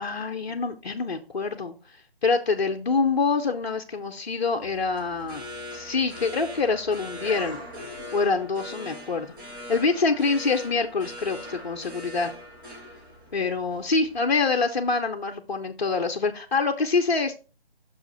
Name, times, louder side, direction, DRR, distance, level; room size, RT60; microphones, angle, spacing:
voice 1, 0.0-1.8 2.2-5.4 5.7-7.6 8.1-9.3 9.7-12.3 13.3-17.3, left 4 dB, 45° left, 3 dB, 0.7 m, -25 dB
sound 1, 4.6-14.2, left 1 dB, 20° right, 1.2 m, -41 dB
6.4 x 4.7 x 5.4 m, 0.33 s
figure-of-eight pair, 150°, 31 cm